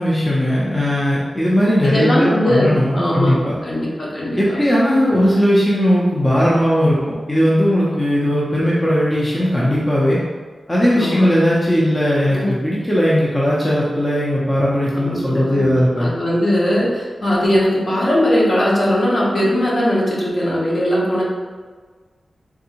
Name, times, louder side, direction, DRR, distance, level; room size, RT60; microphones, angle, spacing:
voice 1, 0.0-3.6 4.4-10.2 10.7-16.1, equal, 20° left, -7 dB, 0.5 m, -17 dB
voice 2, 1.8-3.3 3.6-4.4 11.0-11.2 12.3-12.5 15.0-21.2, equal, 50° left, -6 dB, 0.9 m, -19 dB
3.5 x 2.5 x 2.8 m, 1.5 s
wide cardioid pair, 105°, 0 cm